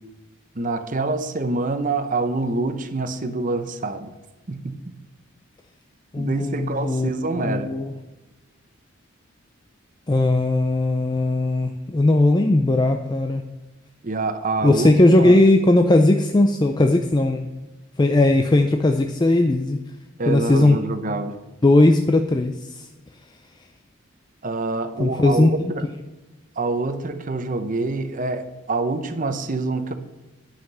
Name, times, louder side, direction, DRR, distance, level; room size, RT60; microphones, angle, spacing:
voice 1, 0.5-4.1 4.5-4.8 6.2-7.7 14.0-14.9 15.2-15.4 20.2-21.4 24.4-25.9 26.6-29.9, right 3 dB, 40° right, 0.8 m, -26 dB
voice 2, 6.1-7.1 7.4-7.9 10.1-13.4 14.6-17.5 18.0-19.8 20.3-20.8 21.6-22.9 25.0-25.7, left 2 dB, 20° left, 0.4 m, -18 dB
10.5 x 5.9 x 5.5 m
head